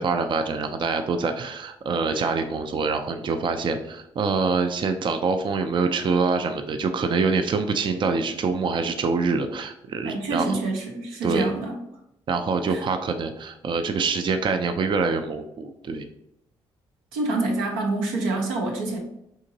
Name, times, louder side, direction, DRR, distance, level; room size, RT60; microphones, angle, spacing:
voice 1, 0.0-10.6 11.2-11.5 12.3-16.1, right 4 dB, 40° right, 7 dB, 0.4 m, -25 dB
voice 2, 10.0-11.7 12.7-12.8 17.1-19.0, right 2 dB, 90° right, 1 dB, 0.6 m, -27 dB
3.8 x 2.8 x 2.6 m, 0.79 s
hypercardioid pair, 50°, 12 cm